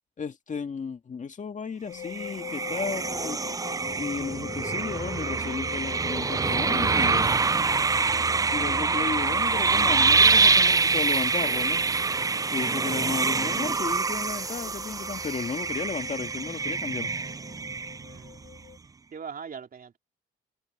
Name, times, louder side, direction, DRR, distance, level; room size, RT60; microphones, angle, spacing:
voice 1, 0.2-3.4 4.0-7.3 8.5-11.8 12.5-17.1, left 5 dB, 40° left, 1.9 m, -34 dB
sound 1, 1.9-18.8, left 11 dB, 60° left, 1.8 m, -44 dB
sound 2, 2.0-18.3, right 4 dB, 20° right, 0.4 m, -25 dB
voice 2, 18.0-18.6 19.1-20.0, right 6 dB, 45° right, 3.2 m, -41 dB
cardioid pair, 90°, 20 cm